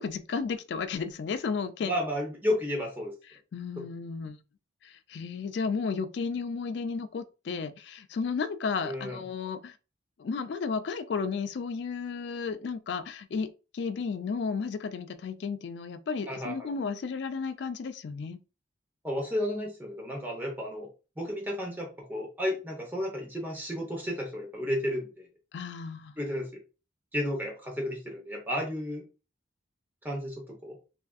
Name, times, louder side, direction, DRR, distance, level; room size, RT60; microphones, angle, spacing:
voice 1, 0.0-1.9 3.5-4.4 4.8-9.7 10.2-18.4 25.5-26.1, left 5 dB, 60° left, 0.3 m, -33 dB
voice 2, 1.8-3.1 3.8-3.9 8.8-9.2 16.3-16.7 19.0-20.9 21.2-25.3 26.2-26.5 27.1-29.0 30.0-30.8, left 1 dB, 10° right, 0.8 m, -32 dB
3.3 x 2.5 x 2.3 m
head